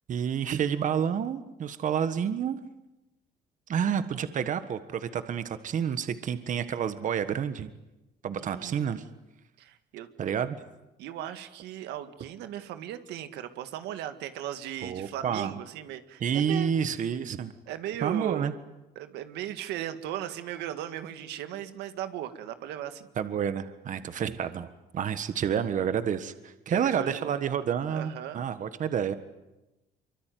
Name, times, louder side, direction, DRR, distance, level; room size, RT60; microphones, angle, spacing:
voice 1, 0.1-2.6 3.7-7.7 8.2-9.0 10.2-10.6 14.8-15.5 16.2-17.5 18.0-18.5 23.2-29.1, right 8 dB, 50° right, 11 dB, 1.5 m, -29 dB
voice 2, 8.4-9.1 9.6-10.1 11.0-16.7 17.7-18.5 19.0-23.1 26.7-27.4 27.9-28.4, right 11 dB, 85° right, 9 dB, 1.9 m, -37 dB
25.0 x 24.0 x 9.4 m, 1.0 s
cardioid pair, 110°, 17 cm